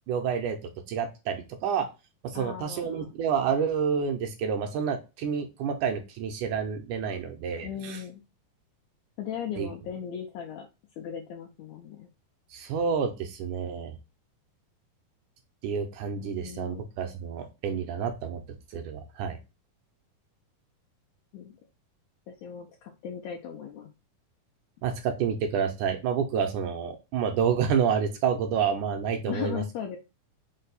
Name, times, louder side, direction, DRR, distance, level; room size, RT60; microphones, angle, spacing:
voice 1, 0.1-1.9 2.2-8.0 9.6-9.7 12.5-14.0 15.6-18.4 18.7-19.4 24.8-29.6, right 7 dB, 80° right, 5 dB, 1.9 m, -29 dB
voice 2, 2.3-3.1 7.6-8.2 9.2-10.7 11.0-12.1 16.2-16.8 21.3-21.5 22.3-23.9 29.3-30.0, left 8 dB, 80° left, 1 dB, 1.6 m, -37 dB
5.3 x 2.2 x 3.9 m, 0.27 s
omnidirectional pair, 3.8 m